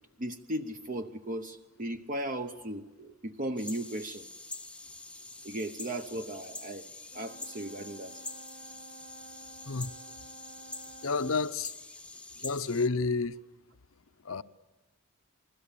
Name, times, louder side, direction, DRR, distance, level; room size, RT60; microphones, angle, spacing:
voice 1, 0.2-4.3 5.4-6.8 7.1-8.2, right 1 dB, 40° right, 0.9 m, -36 dB
sound 1, 3.6-12.9, left 3 dB, 5° left, 0.9 m, -45 dB
Brass instrument, 7.1-11.5, right 5 dB, 80° right, 3.3 m, -52 dB
voice 2, 11.0-11.7 12.4-13.4 14.2-14.4, left 4 dB, 70° left, 0.8 m, -30 dB
29.0 x 20.5 x 8.5 m
head